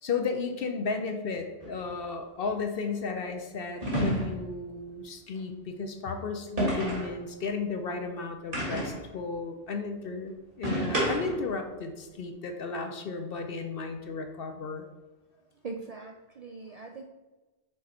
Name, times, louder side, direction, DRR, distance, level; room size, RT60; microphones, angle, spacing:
voice 1, 0.0-14.9, left 4 dB, 60° left, 5 dB, 0.8 m, -34 dB
sound 1, 1.6-1.8 3.8-4.5 6.6-7.2 8.5-9.1 10.6-11.5, right 1 dB, 30° right, 1.9 m, -29 dB
voice 2, 15.6-17.0, right 3 dB, 60° right, 2 dB, 0.4 m, -41 dB
6.4 x 3.9 x 4.2 m, 1.2 s
omnidirectional pair, 1.2 m